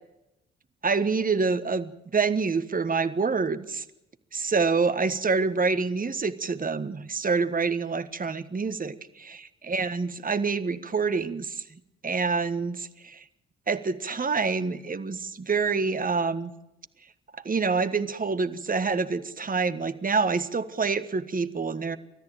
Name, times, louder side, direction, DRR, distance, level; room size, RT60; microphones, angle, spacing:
voice 1, 0.8-3.8 4.3-9.0 9.7-11.6 12.0-13.2 13.7-16.5 17.4-22.0, right 4 dB, 30° right, 12 dB, 1.4 m, -26 dB
30.0 x 13.5 x 9.0 m, 0.94 s
hypercardioid pair, 40°, 30 cm